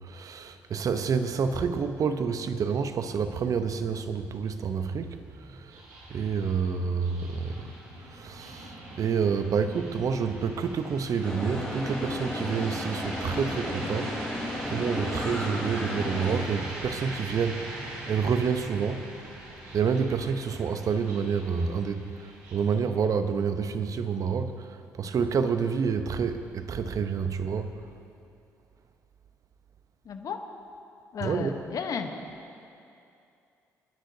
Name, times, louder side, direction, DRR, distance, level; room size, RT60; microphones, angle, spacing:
voice 1, 0.0-5.8 6.1-7.7 8.1-14.3 14.7-17.7 18.1-19.1 19.7-27.8 31.2-31.6, right 6 dB, 50° right, 9 dB, 0.8 m, -28 dB
sound 1, 4.0-22.8, right 1 dB, 75° right, 2.4 m, -41 dB
sound 2, 11.2-16.4, left 1 dB, 10° left, 3.8 m, -34 dB
voice 2, 30.0-30.4 31.1-32.1, left 6 dB, 55° left, 6 dB, 1.1 m, -33 dB
28.0 x 10.0 x 2.8 m, 2.6 s
hypercardioid pair, 50°, 7 cm